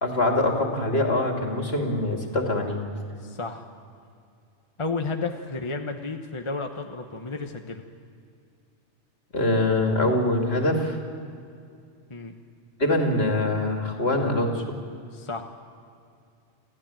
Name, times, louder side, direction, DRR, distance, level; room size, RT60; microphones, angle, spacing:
voice 1, 0.0-2.8 9.3-11.0 12.8-14.6, left 2 dB, 60° left, 2 dB, 2.8 m, -24 dB
voice 2, 3.2-3.6 4.8-7.8 12.1-12.3 15.1-15.4, left 3 dB, 25° left, 4 dB, 1.1 m, -32 dB
27.5 x 14.5 x 9.0 m, 2.4 s
omnidirectional pair, 1.2 m